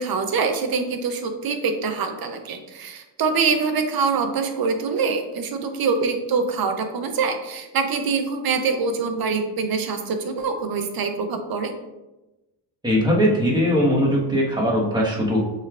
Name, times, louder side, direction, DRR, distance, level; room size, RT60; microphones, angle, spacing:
voice 1, 0.0-11.7, right 5 dB, 50° right, 6 dB, 0.8 m, -24 dB
voice 2, 12.8-15.4, equal, 10° right, -4 dB, 1.4 m, -20 dB
6.4 x 3.3 x 2.5 m, 1.0 s
cardioid pair, 85°, 46 cm